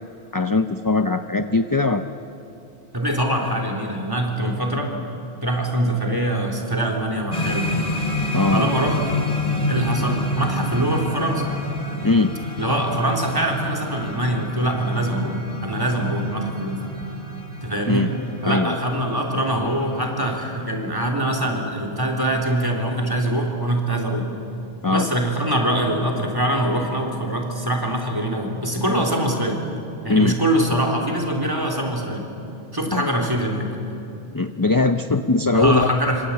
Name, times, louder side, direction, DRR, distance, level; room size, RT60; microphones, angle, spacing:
voice 1, 0.3-2.0 8.3-8.6 12.0-12.4 17.9-18.1 18.4-18.8 24.8-25.1 30.1-30.4 32.9-33.1 34.3-35.9, left 3 dB, 25° left, 8 dB, 0.7 m, -20 dB
voice 2, 2.9-4.9 5.4-7.9 8.5-9.0 9.7-11.6 12.6-16.8 17.6-18.1 18.4-24.3 24.9-29.6 30.0-32.3 32.7-33.7 35.5-36.3, right 1 dB, 20° right, 2 dB, 3.6 m, -23 dB
sound 1, 7.3-20.7, left 1 dB, 40° left, 2.8 m, -28 dB
26.5 x 25.5 x 8.6 m, 2.8 s
omnidirectional pair, 1.0 m